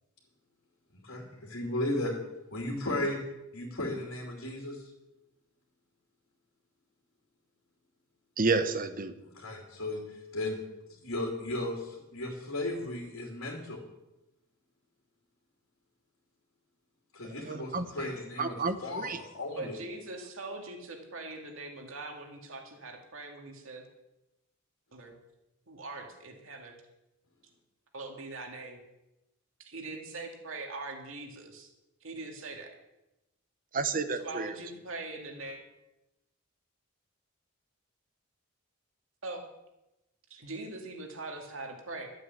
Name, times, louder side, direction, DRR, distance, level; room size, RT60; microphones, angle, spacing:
voice 1, 0.9-2.2 2.5-3.2 3.5-4.9 9.3-10.6 11.0-13.8 17.1-19.8, left 1 dB, 75° left, 0 dB, 2.7 m, -35 dB
voice 2, 8.4-9.2 17.4-17.9 18.4-19.2 33.7-34.5, right 4 dB, 40° right, 10 dB, 0.9 m, -30 dB
voice 3, 19.5-23.8 24.9-25.1 25.7-26.7 27.9-28.8 29.7-31.7 32.0-32.7 34.1-35.6 39.2-39.4 40.3-42.1, right 2 dB, 65° right, 2 dB, 2.4 m, -42 dB
12.5 x 7.8 x 8.5 m, 0.95 s
head